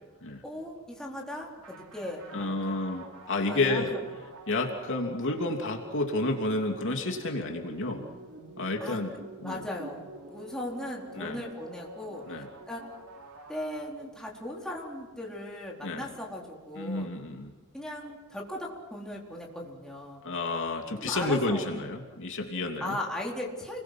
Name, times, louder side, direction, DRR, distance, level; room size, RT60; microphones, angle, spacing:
voice 1, 0.4-2.8 3.3-4.0 8.8-9.0 9.4-12.8 13.5-17.1 17.7-20.2 21.0-21.7 22.8-23.8, left 1 dB, 5° left, -3 dB, 4.2 m, -38 dB
sound 1, 1.6-14.2, right 2 dB, 75° right, 3.0 m, -48 dB
voice 2, 2.3-3.9 4.5-8.0 8.6-9.1 9.4-9.6 11.1-11.4 12.3-12.5 15.8-16.0 16.7-17.5 20.2-23.0, left 2 dB, 60° left, 2 dB, 3.0 m, -30 dB
29.5 x 22.0 x 6.1 m, 1.2 s
head